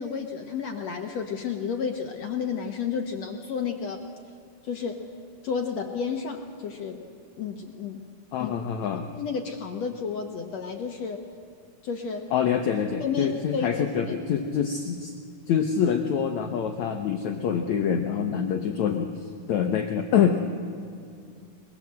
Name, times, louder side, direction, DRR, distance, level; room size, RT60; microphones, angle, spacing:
voice 1, 0.0-4.0 4.6-5.0 5.4-7.0 7.4-8.0 8.4-8.5 9.1-11.2 11.8-12.2 13.0-13.7 14.1-14.2, left 6 dB, 65° left, 3 dB, 1.7 m, -31 dB
voice 2, 8.3-9.1 12.3-15.1 15.5-19.1 19.5-20.4, left 7 dB, 85° left, 4 dB, 1.6 m, -25 dB
22.5 x 22.5 x 7.7 m, 2.4 s
omnidirectional pair, 4.7 m